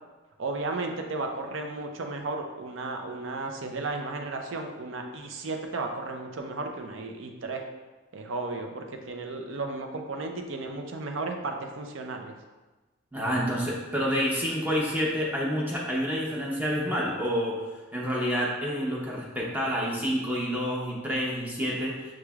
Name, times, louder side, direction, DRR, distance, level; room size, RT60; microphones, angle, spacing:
voice 1, 0.4-7.7 8.1-12.3, right 3 dB, 70° right, 3 dB, 0.5 m, -34 dB
voice 2, 13.1-17.6 17.9-22.1, equal, 10° right, -4 dB, 0.7 m, -28 dB
5.9 x 3.1 x 2.3 m, 1.2 s
head